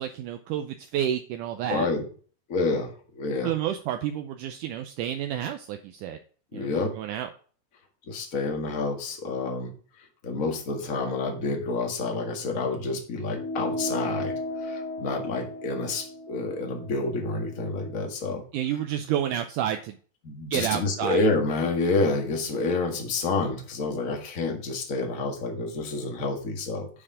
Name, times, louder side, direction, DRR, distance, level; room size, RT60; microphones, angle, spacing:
voice 1, 0.0-1.9 3.4-6.2 6.5-7.3 18.5-20.0 20.5-21.2, right 10 dB, 80° right, 6 dB, 2.0 m, -30 dB
voice 2, 1.7-2.0 2.5-3.5 6.5-7.0 8.1-9.7 10.2-14.3 14.6-18.4 20.2-26.9, left 3 dB, 40° left, 3 dB, 1.2 m, -28 dB
sound 1, 13.3-18.1, left 1 dB, 90° left, 3.5 m, -35 dB
9.8 x 4.9 x 4.9 m, 0.41 s
omnidirectional pair, 4.0 m